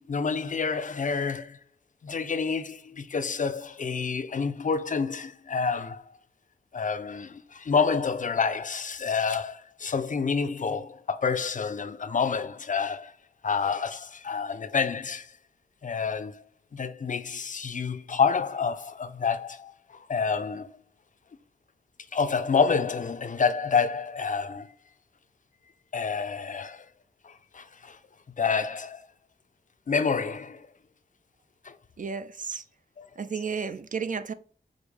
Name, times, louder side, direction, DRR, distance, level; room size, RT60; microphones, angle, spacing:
voice 1, 0.0-1.6 2.0-6.0 6.7-13.1 13.4-15.3 15.8-16.4 16.7-19.7 20.1-20.7 22.1-24.7 25.9-26.8 27.2-28.0 28.4-29.0 29.9-30.7 31.6-31.8 33.0-33.1, left 5 dB, 50° left, 0.4 m, -28 dB
voice 2, 32.0-32.6 33.2-34.3, right 5 dB, 50° right, 0.4 m, -32 dB
5.1 x 2.1 x 4.7 m
wide cardioid pair, 105°, 17 cm